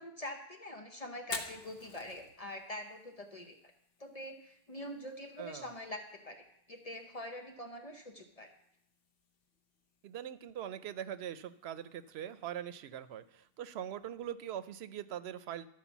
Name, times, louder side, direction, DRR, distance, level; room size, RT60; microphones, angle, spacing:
voice 1, 0.0-3.6 4.0-8.5, left 1 dB, 40° left, 4 dB, 0.8 m, -44 dB
Fire, 1.2-15.1, left 4 dB, 65° left, 1.2 m, -53 dB
voice 2, 5.4-5.7 10.0-15.7, right 10 dB, 85° right, 14 dB, 0.8 m, -42 dB
12.0 x 4.8 x 7.0 m, 0.75 s
omnidirectional pair, 1.0 m